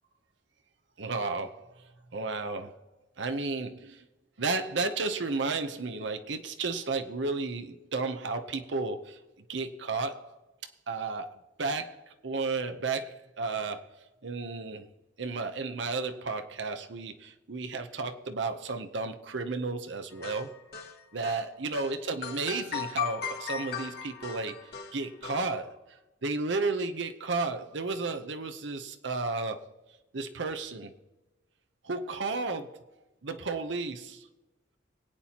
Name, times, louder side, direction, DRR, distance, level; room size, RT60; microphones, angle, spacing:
voice 1, 1.0-2.8 3.2-4.1 4.4-9.2 9.5-10.4 10.9-14.9 15.2-20.6 21.1-29.7 30.1-30.9 31.8-32.9 33.2-34.3, right 3 dB, 70° right, 0.8 m, -33 dB
sound 1, 20.2-21.4 21.7-21.9 22.2-25.4, left 8 dB, 55° left, 1.8 m, -37 dB
25.5 x 8.9 x 2.9 m
head